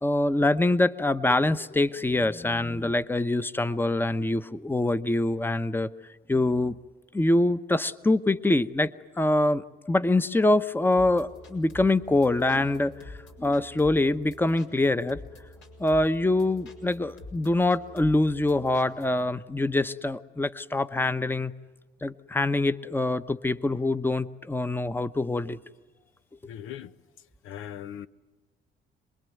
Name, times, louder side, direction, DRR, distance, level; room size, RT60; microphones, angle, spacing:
voice 1, 0.0-5.9 6.3-6.8 7.1-8.9 9.2-13.1 13.4-15.2 15.8-21.5 22.0-25.6, left 2 dB, 10° left, 0.9 m, -24 dB
sound 1, 10.9-19.3, left 2 dB, 70° left, 5.0 m, -47 dB
voice 2, 26.4-26.9 27.4-28.1, left 10 dB, 90° left, 0.9 m, -39 dB
27.5 x 21.5 x 9.4 m
cardioid pair, 90°, 20 cm